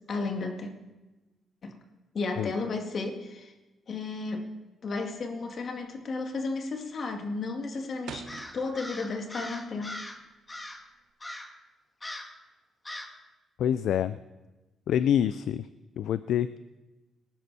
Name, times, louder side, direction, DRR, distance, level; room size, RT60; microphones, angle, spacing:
voice 1, 0.1-0.7 1.6-1.7 2.1-3.5 3.9-4.4 4.8-8.3 8.5-10.0, left 3 dB, 50° left, 3 dB, 2.3 m, -33 dB
sound 1, 4.8-5.2 5.5-5.9 6.2-6.7 7.0-9.3 9.6-11.1, right 7 dB, 80° right, 1.1 m, -47 dB
Crow, 8.3-10.2 10.5-10.9 11.2-11.6 12.0-12.4 12.9-13.2, left 1 dB, 20° left, 1.7 m, -41 dB
voice 2, 13.6-14.2 14.9-15.7 16.0-16.6, left 9 dB, 75° left, 14 dB, 0.4 m, -26 dB
20.0 x 10.5 x 4.3 m, 1.1 s
cardioid pair, 85°, 0 cm